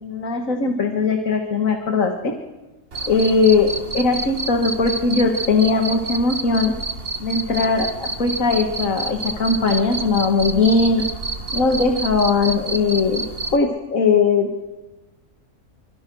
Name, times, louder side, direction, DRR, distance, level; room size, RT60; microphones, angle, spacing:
voice 1, 0.0-2.3 3.1-6.7 7.2-11.0 11.5-13.2 13.5-14.5, left 4 dB, 75° left, 4 dB, 2.2 m, -19 dB
Cricket, 2.9-13.6, right 3 dB, 45° right, 1.8 m, -29 dB
27.5 x 24.5 x 6.3 m, 1.1 s
omnidirectional pair, 1.4 m